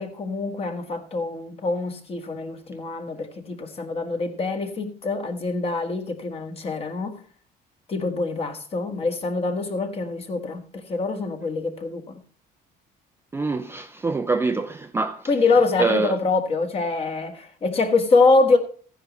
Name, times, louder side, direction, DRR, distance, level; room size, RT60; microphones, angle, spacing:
voice 1, 0.0-7.2 7.9-12.2 15.3-18.6, left 3 dB, 35° left, 1.6 m, -24 dB
voice 2, 13.3-15.3 15.8-16.2, right 3 dB, 15° right, 0.5 m, -25 dB
14.5 x 10.0 x 3.1 m
cardioid pair, 135°, 18 cm